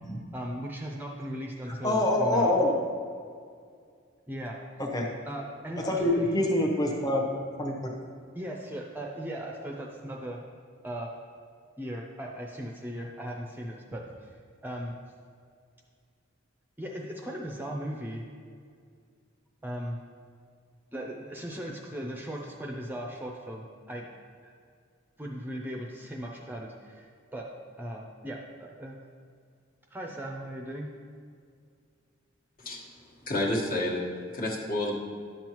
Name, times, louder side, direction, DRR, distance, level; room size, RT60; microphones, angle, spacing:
voice 1, 0.3-2.6 4.3-4.6 5.2-6.4 8.3-10.4 10.8-11.1 11.8-14.3 14.6-15.0 16.8-18.2 19.6-20.0 20.9-24.1 24.4-24.5 25.2-29.0 29.9-30.9, equal, 10° right, 0 dB, 0.6 m, -38 dB
voice 2, 1.8-2.7 4.8-5.1 5.9-7.2 7.6-7.9, left 1 dB, 20° left, -1 dB, 1.0 m, -25 dB
voice 3, 32.6-34.0 34.3-35.0, left 1 dB, 45° left, -3 dB, 1.3 m, -30 dB
11.0 x 7.4 x 3.0 m, 2.2 s
head